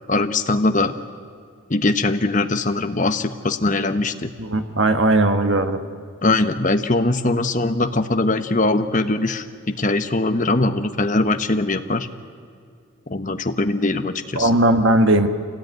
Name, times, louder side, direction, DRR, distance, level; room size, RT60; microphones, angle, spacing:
voice 1, 0.1-0.9 1.7-4.3 6.2-12.1 13.1-14.5, left 2 dB, 35° left, 8 dB, 1.0 m, -21 dB
voice 2, 4.4-5.8 14.4-15.3, right 2 dB, 60° right, 7 dB, 1.5 m, -17 dB
26.5 x 18.0 x 9.4 m, 2.2 s
head